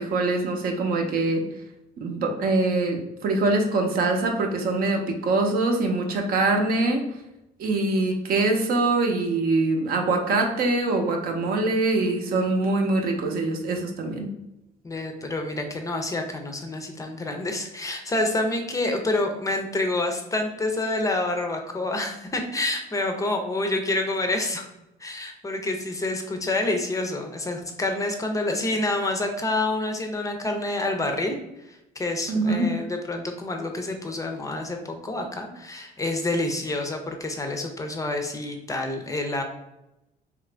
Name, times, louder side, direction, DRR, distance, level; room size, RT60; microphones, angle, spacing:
voice 1, 0.0-1.4 2.0-7.0 7.6-14.3 32.3-32.7, right 2 dB, 60° right, 3 dB, 0.6 m, -23 dB
voice 2, 14.8-24.7 25.0-31.4 31.7-39.4, left 2 dB, 20° left, 4 dB, 0.4 m, -28 dB
2.9 x 2.4 x 3.2 m, 0.92 s
cardioid pair, 110°, 17 cm